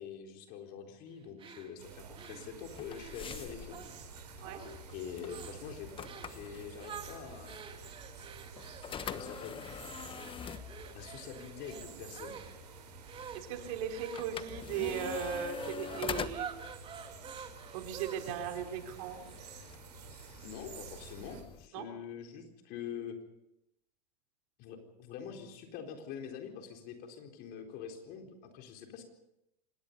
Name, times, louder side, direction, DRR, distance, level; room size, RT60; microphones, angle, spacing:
voice 1, 0.0-3.8 4.9-7.6 9.1-9.6 10.9-12.4 20.4-23.2 24.6-29.0, left 7 dB, 50° left, 4 dB, 4.1 m, -45 dB
sound 1, 1.4-4.1 4.4-4.9 5.2-5.6 6.0-6.4 6.8-18.5, right 6 dB, 25° right, 2.7 m, -48 dB
sound 2, 1.8-21.4, right 7 dB, 75° right, 4.5 m, -51 dB
sound 3, 2.7-21.7, left 8 dB, 25° left, 1.2 m, -46 dB
voice 2, 13.3-16.5 17.7-19.3 21.7-21.9, right 7 dB, 60° right, 4 dB, 3.7 m, -37 dB
25.5 x 19.5 x 5.5 m, 0.83 s
hypercardioid pair, 95°, 21 cm